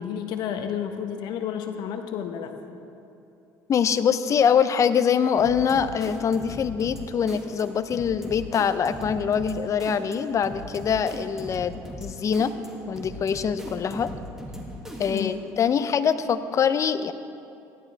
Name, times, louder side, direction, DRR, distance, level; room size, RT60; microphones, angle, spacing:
voice 1, 0.0-2.5 15.1-15.4, left 8 dB, 70° left, 6 dB, 1.1 m, -31 dB
voice 2, 3.7-12.5 12.9-14.1 15.0-17.1, left 7 dB, 45° left, 12 dB, 0.7 m, -24 dB
sound 1, 5.4-15.5, equal, 5° right, 2.3 m, -39 dB
17.5 x 11.5 x 3.5 m, 2.8 s
supercardioid pair, 80°, 8 cm